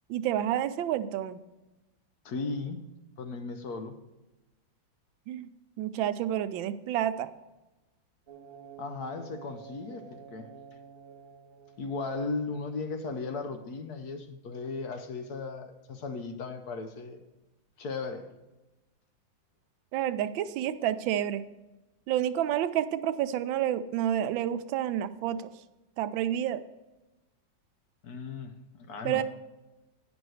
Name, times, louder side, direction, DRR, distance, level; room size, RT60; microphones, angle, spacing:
voice 1, 0.1-1.4 5.3-5.5 5.8-7.3 19.9-21.4 22.1-25.5 26.0-26.6 29.0-29.2, right 11 dB, 85° right, 12 dB, 1.3 m, -29 dB
voice 2, 2.2-2.8 3.2-4.0 8.8-10.5 11.8-17.2 17.8-18.3 28.0-29.2, left 4 dB, 60° left, 7 dB, 1.1 m, -36 dB
sound 1, 8.3-13.0, right 7 dB, 50° right, 1.5 m, -50 dB
9.4 x 6.1 x 6.3 m, 1.1 s
omnidirectional pair, 2.1 m